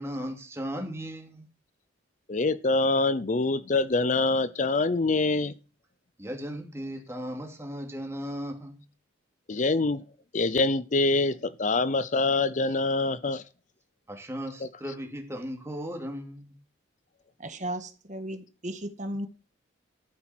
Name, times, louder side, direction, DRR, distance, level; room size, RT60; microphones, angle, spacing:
voice 1, 0.0-1.5 6.2-8.8 14.1-16.6, equal, 15° right, 2.8 m, -36 dB
voice 2, 2.3-5.5 9.5-10.0 10.3-13.4, left 3 dB, 40° left, 0.5 m, -25 dB
voice 3, 17.4-19.3, right 1 dB, 40° right, 1.6 m, -35 dB
13.0 x 8.6 x 6.0 m
head